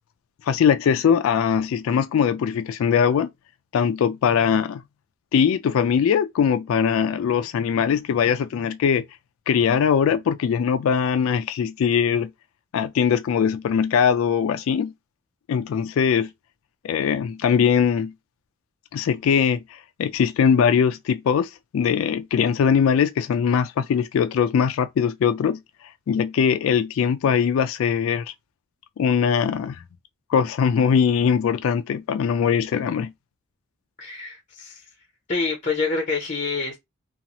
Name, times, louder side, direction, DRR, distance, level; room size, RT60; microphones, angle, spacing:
voice 1, 0.4-3.3 3.7-4.8 5.3-9.0 9.5-12.3 12.7-14.9 15.5-16.3 16.8-18.1 18.9-25.6 26.1-28.3 29.0-29.8 30.3-33.1, left 7 dB, 80° left, 0.3 m, -21 dB
voice 2, 34.0-34.8 35.3-36.8, left 4 dB, 35° left, 0.6 m, -27 dB
2.6 x 2.4 x 2.9 m
head